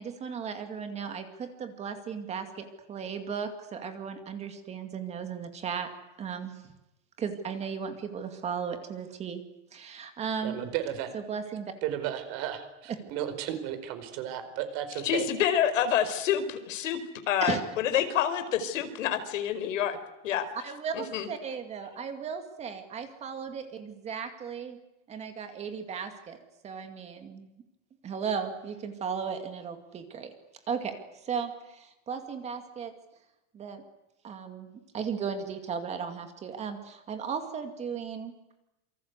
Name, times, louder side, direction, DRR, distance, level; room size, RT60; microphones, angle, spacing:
voice 1, 0.0-5.9 6.2-6.6 7.2-9.4 9.7-10.6 11.1-11.7 17.4-17.6 17.9-18.0 20.5-24.8 25.1-26.4 26.6-27.5 28.0-30.3 30.7-30.9 31.2-32.9 33.5-33.8 34.2-38.3, right 6 dB, 15° right, 7 dB, 2.3 m, -36 dB
voice 2, 10.4-11.1 11.8-15.2, right 11 dB, 40° right, 9 dB, 4.8 m, -34 dB
voice 3, 15.0-17.0 17.3-20.0 20.2-20.5 20.9-21.3, left 9 dB, 85° left, 9 dB, 4.8 m, -27 dB
27.5 x 25.0 x 8.2 m, 0.92 s
supercardioid pair, 175°, 37 cm